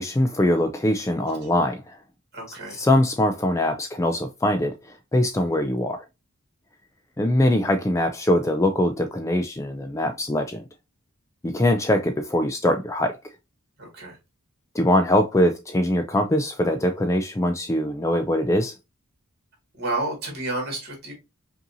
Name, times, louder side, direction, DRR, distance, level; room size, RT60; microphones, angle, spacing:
voice 1, 0.0-2.0 2.7-6.0 7.2-10.7 11.4-13.2 14.7-18.7, left 1 dB, 15° left, 0.3 m, -22 dB
voice 2, 2.3-2.8 13.8-14.2 19.8-21.1, right 2 dB, 45° right, 2.1 m, -30 dB
5.3 x 2.7 x 2.7 m
head